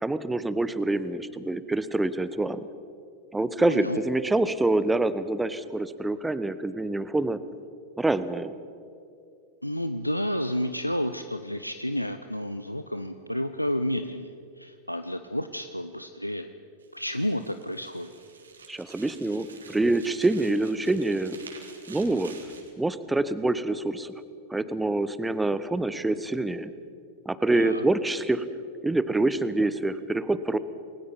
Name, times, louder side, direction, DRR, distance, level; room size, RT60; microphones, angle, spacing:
voice 1, 0.0-2.7 3.3-7.4 8.0-8.5 18.7-21.4 21.9-22.3 22.8-24.1 24.5-26.7 27.2-28.4 28.8-30.6, right 2 dB, 5° right, 14 dB, 1.1 m, -26 dB
voice 2, 3.6-4.0 9.6-16.5 16.9-18.1 27.6-27.8, equal, 90° left, 9 dB, 0.7 m, -31 dB
sound 1, 16.8-22.7, right 5 dB, 70° right, 3.3 m, -49 dB
29.0 x 21.0 x 5.4 m, 2.5 s
figure-of-eight pair, 90°, 0 cm